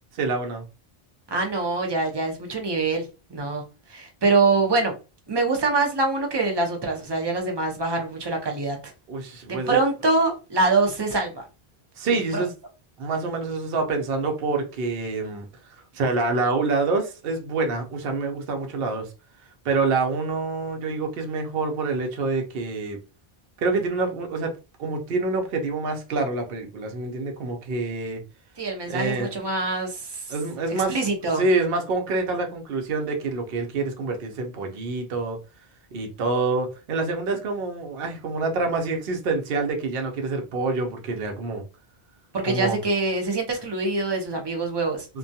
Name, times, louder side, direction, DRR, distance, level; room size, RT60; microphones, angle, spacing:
voice 1, 0.2-0.7 9.1-9.8 12.0-12.5 13.0-19.1 19.6-23.0 23.6-24.5 24.8-28.2 28.9-29.3 30.3-31.0 31.3-35.4 35.9-41.6 42.5-42.8 45.1-45.2, right 3 dB, 70° right, 0.8 m, -26 dB
voice 2, 1.3-4.9 5.3-8.9 9.5-11.4 12.3-12.5 28.6-30.3 30.7-31.4 42.3-45.1, right 3 dB, 30° right, 0.5 m, -24 dB
2.2 x 2.2 x 2.6 m
omnidirectional pair, 1.1 m